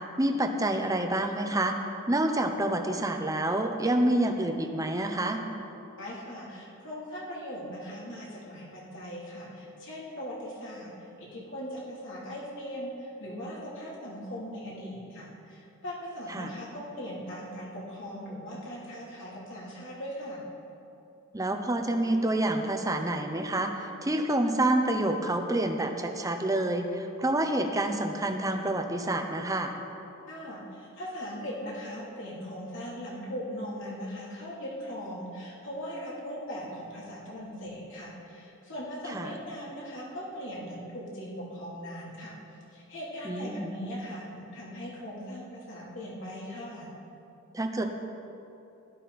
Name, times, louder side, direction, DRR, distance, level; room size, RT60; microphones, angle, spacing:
voice 1, 0.2-1.8 2.1-5.4 16.3-16.5 21.3-29.7 39.1-39.3 43.2-43.7 47.5-47.8, right 1 dB, 15° right, 5 dB, 0.9 m, -28 dB
voice 2, 6.0-10.9 11.2-20.4 30.3-42.4 42.7-46.9, equal, 60° left, -6 dB, 3.4 m, -39 dB
15.5 x 12.0 x 4.3 m, 2.8 s
head